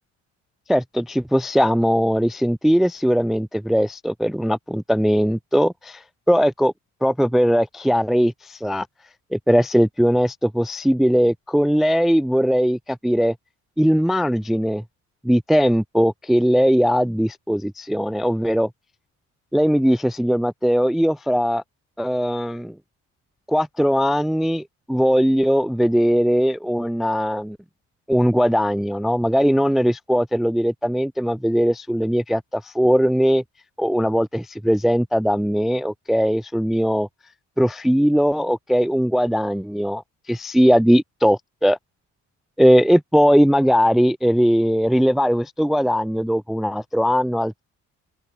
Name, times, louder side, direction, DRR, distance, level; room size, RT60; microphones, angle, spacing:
voice 1, 0.7-6.7 7.0-8.9 9.3-13.3 13.8-14.8 15.2-18.7 19.5-21.6 22.0-22.7 23.5-27.6 28.1-33.4 33.8-37.1 37.6-40.0 40.3-41.8 42.6-47.6, equal, ahead, 0.4 m, -19 dB
open air
cardioid pair, 90°, 30 cm